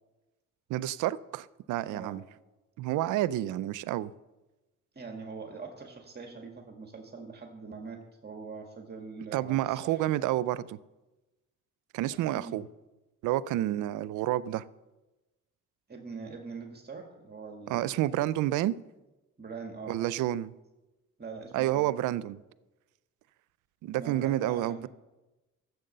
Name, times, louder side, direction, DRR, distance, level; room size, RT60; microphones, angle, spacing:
voice 1, 0.7-2.2 2.8-4.1 9.3-10.8 11.9-12.7 13.2-14.6 17.7-18.8 19.9-20.5 21.5-22.4 23.8-24.9, right 14 dB, 90° right, 0.5 m, -29 dB
voice 2, 1.9-2.2 5.0-10.0 12.3-12.6 15.9-17.9 19.4-20.0 21.2-21.9 24.0-24.9, right 4 dB, 35° right, 1.9 m, -43 dB
14.0 x 8.0 x 6.7 m
cardioid pair, 90°, 30 cm